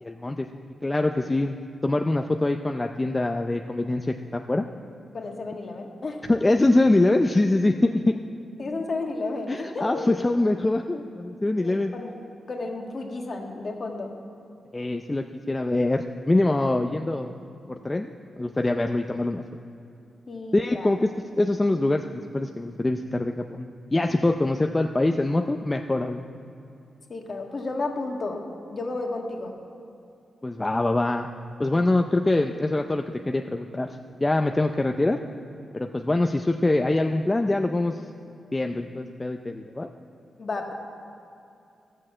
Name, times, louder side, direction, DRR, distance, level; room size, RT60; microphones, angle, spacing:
voice 1, 0.0-4.7 6.3-8.2 9.5-11.9 14.7-17.3 17.7-19.4 20.5-21.1 21.4-26.2 30.4-31.3 31.6-33.9 34.2-35.2 35.7-38.0 38.5-39.9, left 2 dB, 20° left, 4 dB, 0.5 m, -24 dB
voice 2, 5.1-6.3 8.6-10.1 11.6-12.1 12.5-14.1 20.3-20.9 27.1-28.4 28.7-29.5 40.4-40.7, left 3 dB, 45° left, 2 dB, 1.7 m, -32 dB
14.0 x 6.5 x 7.5 m, 2.7 s
cardioid pair, 85°, 0 cm